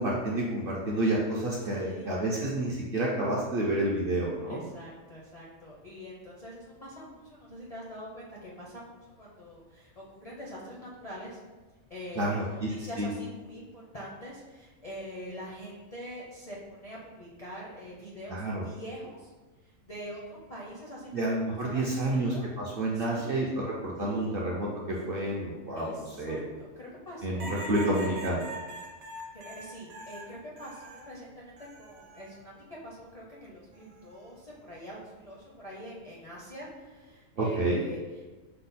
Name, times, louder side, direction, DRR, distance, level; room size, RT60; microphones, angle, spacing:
voice 1, 0.0-4.6 12.2-12.7 13.0-13.1 18.3-18.7 21.1-26.4 27.2-28.4 37.4-37.8, right 1 dB, 60° right, -4 dB, 0.6 m, -29 dB
voice 2, 1.6-2.4 4.5-11.4 11.9-19.3 19.6-22.4 22.9-23.4 24.0-24.4 25.8-27.5 27.9-28.3 29.3-38.3, equal, 45° left, -6 dB, 0.5 m, -44 dB
sound 1, 27.4-31.1 31.6-32.4 33.7-34.2, right 1 dB, 75° right, 1.2 m, -43 dB
5.6 x 2.1 x 4.0 m, 1.2 s
omnidirectional pair, 1.5 m